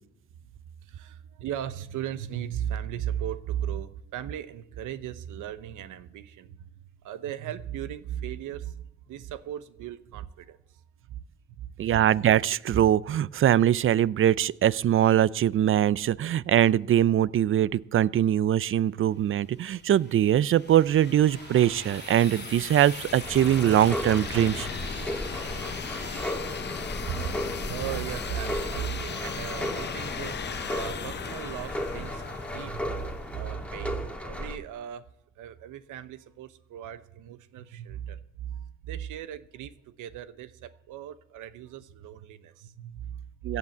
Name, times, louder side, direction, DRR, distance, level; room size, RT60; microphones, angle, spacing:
voice 1, 0.8-10.8 11.1-11.8 27.2-30.4 30.7-35.1 35.3-43.6, right 10 dB, 85° right, 13 dB, 0.9 m, -37 dB
voice 2, 11.8-24.7 43.4-43.6, right 11 dB, 45° right, 21 dB, 0.4 m, -22 dB
sound 1, 19.2-26.4, right 6 dB, 65° right, 2.0 m, -46 dB
sound 2, 19.7-33.5, left 7 dB, 35° left, 0.7 m, -38 dB
sound 3, 23.2-34.6, equal, 5° left, 1.7 m, -35 dB
16.0 x 8.3 x 7.8 m, 0.78 s
cardioid pair, 90°, 30 cm